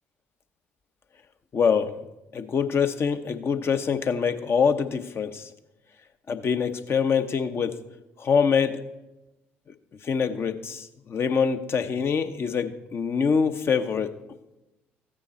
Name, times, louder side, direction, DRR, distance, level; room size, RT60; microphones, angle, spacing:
voice 1, 1.5-2.0 2.3-5.5 6.3-7.8 8.2-8.8 10.0-14.1, left 6 dB, 40° left, 9 dB, 0.8 m, -24 dB
14.5 x 8.8 x 4.2 m, 0.99 s
figure-of-eight pair, 50°, 6 cm